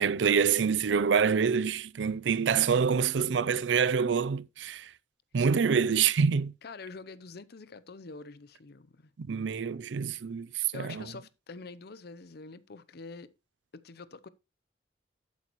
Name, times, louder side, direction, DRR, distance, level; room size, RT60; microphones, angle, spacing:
voice 1, 0.0-4.9 5.3-6.5 9.2-11.0, right 6 dB, 80° right, 0.5 m, -26 dB
voice 2, 6.6-9.1 10.7-13.3 13.7-14.3, left 4 dB, 60° left, 0.7 m, -46 dB
11.5 x 8.3 x 3.0 m
head